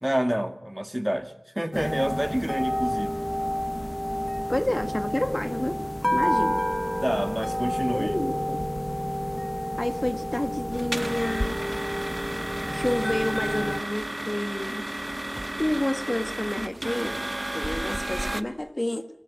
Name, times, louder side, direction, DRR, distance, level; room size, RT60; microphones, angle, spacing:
voice 1, 0.0-3.1 7.0-8.1, equal, 10° right, 8 dB, 2.2 m, -28 dB
sound 1, 1.7-13.8, equal, 10° left, 0.9 m, -29 dB
voice 2, 4.5-5.8 6.1-6.6 7.9-8.6 9.8-11.6 12.7-14.8 15.6-17.2 17.5-19.1, left 1 dB, 30° left, 8 dB, 1.7 m, -29 dB
sound 2, 10.7-18.4, right 1 dB, 30° right, 1.3 m, -33 dB
25.0 x 14.5 x 9.5 m, 0.83 s
wide cardioid pair, 55°, 0 cm